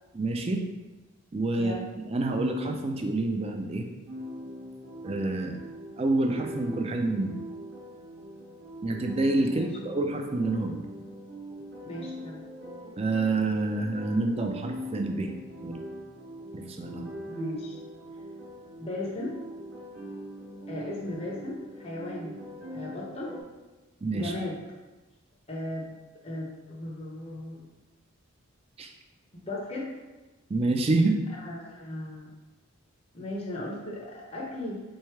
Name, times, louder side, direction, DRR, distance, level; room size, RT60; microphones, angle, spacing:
voice 1, 0.1-0.6 1.3-1.7 2.1-3.8 5.0-5.6 6.0-7.3 8.8-10.8 13.0-15.3 15.6-15.8 16.5-17.1 24.0-24.3 28.8-28.9 30.5-31.2, right 2 dB, 25° right, 4 dB, 0.4 m, -27 dB
voice 2, 1.5-1.9 9.4-9.6 11.8-12.4 17.2-17.8 18.8-19.4 20.7-22.4 22.7-23.3 24.1-24.6 25.5-25.9 26.2-27.6 29.4-29.9 31.3-32.3 33.1-34.8, left 1 dB, 25° left, -3 dB, 0.6 m, -36 dB
sound 1, 4.1-23.4, equal, 50° right, 1.0 m, -42 dB
3.5 x 3.3 x 4.5 m, 1.1 s
head